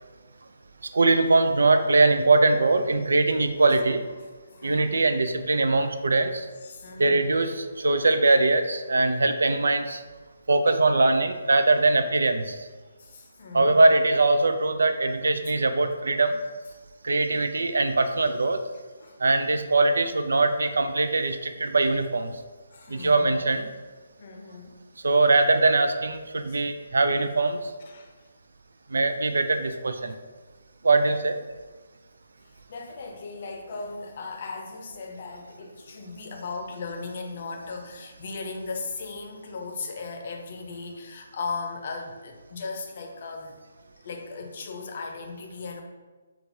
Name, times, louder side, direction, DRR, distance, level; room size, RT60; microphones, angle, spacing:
voice 1, 0.9-4.0 4.6-6.5 7.0-10.0 10.5-12.7 13.5-16.4 17.0-18.6 19.2-22.3 22.9-23.7 25.0-27.7 28.9-30.2 30.8-31.4, right 3 dB, 75° right, 8 dB, 0.3 m, -22 dB
voice 2, 4.5-5.0 6.6-7.2 13.0-13.8 19.0-19.2 22.7-23.4 24.2-24.8 26.5-26.6 27.9-28.1 30.0-30.1 32.7-43.6 44.0-45.8, left 4 dB, 50° left, 3 dB, 0.6 m, -37 dB
5.1 x 2.3 x 2.7 m, 1.3 s
figure-of-eight pair, 145°, 0 cm